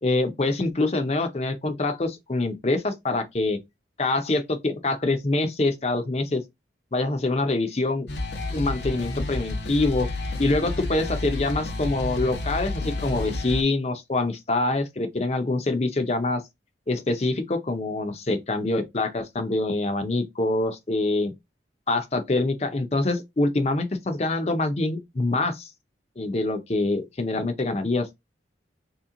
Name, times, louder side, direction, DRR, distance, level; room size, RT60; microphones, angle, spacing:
voice 1, 0.0-3.6 4.0-6.4 6.9-8.1 8.5-10.1 10.4-16.4 16.9-21.3 21.9-25.7 26.2-28.1, left 2 dB, 35° left, 0.6 m, -25 dB
sound 1, 8.1-13.6, left 2 dB, 65° left, 0.8 m, -30 dB
3.1 x 2.9 x 3.7 m
head